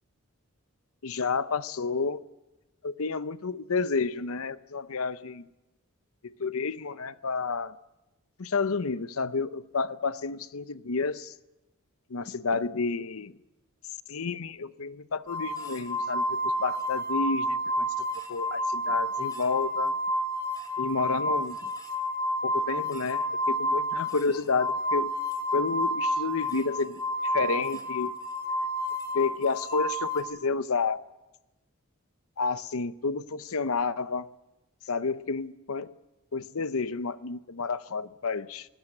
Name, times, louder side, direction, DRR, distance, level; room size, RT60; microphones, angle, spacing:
voice 1, 1.0-2.2 2.8-5.4 6.2-7.7 8.4-11.3 12.1-13.3 14.1-17.6 18.3-19.9 20.8-21.6 22.4-25.1 25.5-27.0 27.3-28.1 29.1-31.0 32.4-34.3 34.9-35.9 36.3-38.7, left 4 dB, 75° left, 0.8 m, -30 dB
sound 1, 15.3-30.2, equal, 15° left, 2.6 m, -30 dB
20.5 x 19.5 x 7.9 m
head